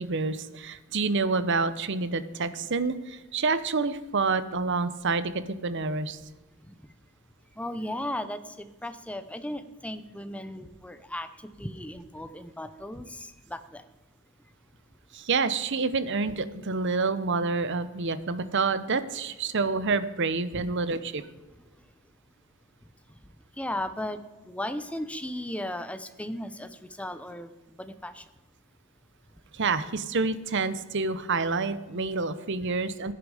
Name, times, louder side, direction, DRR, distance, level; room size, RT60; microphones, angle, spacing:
voice 1, 0.0-6.2 15.1-21.2 29.5-33.1, right 4 dB, 55° right, 14 dB, 0.8 m, -28 dB
voice 2, 7.6-13.8 20.5-20.6 23.6-24.2 24.5-27.5 27.8-28.2, left 1 dB, 5° left, 10 dB, 0.7 m, -36 dB
16.0 x 9.9 x 5.0 m, 1.2 s
head